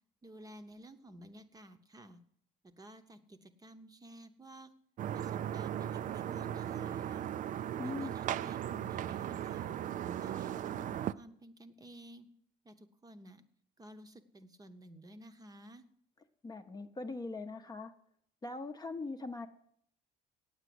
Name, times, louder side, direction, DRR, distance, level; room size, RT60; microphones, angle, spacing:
voice 1, 0.2-2.2 2.6-4.7 5.1-7.3 7.8-9.7 10.2-12.3 12.6-13.4 13.8-15.8, right 1 dB, 20° right, 8 dB, 0.8 m, -53 dB
sound 1, 5.0-11.1, right 10 dB, 50° right, 0.4 m, -37 dB
voice 2, 7.8-8.2 16.4-17.9 18.4-19.5, left 3 dB, 25° left, 7 dB, 0.7 m, -41 dB
8.9 x 8.1 x 7.7 m, 0.68 s
cardioid pair, 110°, 17 cm